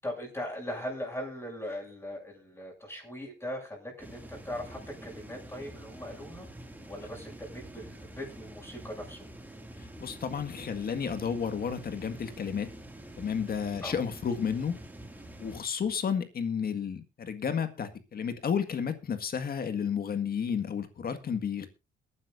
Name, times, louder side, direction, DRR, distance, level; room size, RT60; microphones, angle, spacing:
voice 1, 0.0-6.5 6.9-9.3 13.8-14.0, left 1 dB, 15° left, 0 dB, 7.3 m, -39 dB
sound 1, 4.0-15.6, right 1 dB, 10° right, 2.4 m, -47 dB
voice 2, 10.0-12.7 13.2-14.8 15.4-21.7, left 7 dB, 50° left, 10 dB, 1.8 m, -32 dB
22.0 x 9.6 x 2.6 m, 0.27 s
cardioid pair, 90°, 20 cm